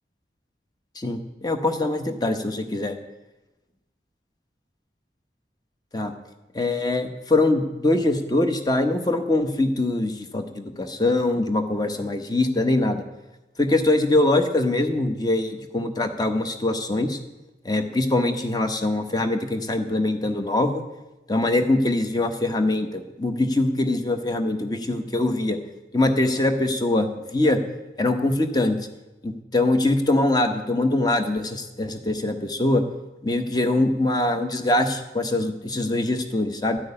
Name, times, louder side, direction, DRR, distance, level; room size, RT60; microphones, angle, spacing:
voice 1, 1.0-3.0 5.9-6.1 6.5-13.0 13.6-17.2 17.6-20.8 21.3-25.6 25.9-27.6 28.0-28.8 29.2-32.8 33.2-36.8, left 2 dB, 20° left, 7 dB, 1.0 m, -23 dB
13.5 x 6.3 x 9.8 m, 1.0 s
head